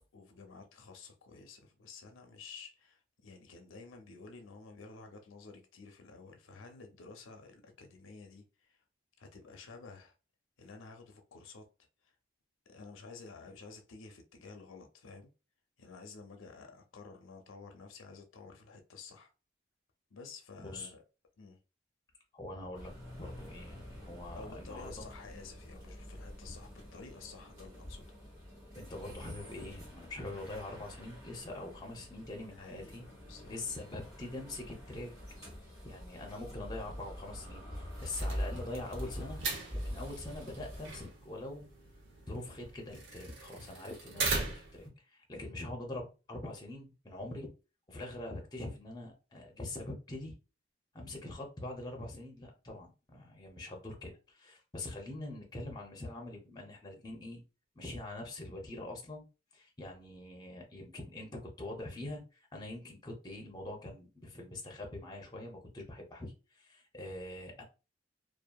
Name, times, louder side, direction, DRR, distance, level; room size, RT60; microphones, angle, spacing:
voice 1, 0.1-8.8 9.2-10.1 10.6-11.7 12.0-12.1 12.7-15.3 15.8-19.3 20.1-21.0 21.4-21.6 24.3-28.1 32.5-33.6, left 4 dB, 85° left, 0.5 m, -51 dB
voice 2, 20.6-20.9 22.3-25.1 28.7-33.0 33.5-35.1 35.8-39.4 39.7-41.6 42.3-47.5 47.9-50.4 50.9-57.4 57.8-59.2 59.5-67.6, left 2 dB, 20° left, 0.6 m, -44 dB
sound 1, 22.7-41.1, equal, 15° right, 1.0 m, -45 dB
sound 2, 37.9-44.9, right 3 dB, 75° right, 0.8 m, -40 dB
2.6 x 2.4 x 2.3 m
head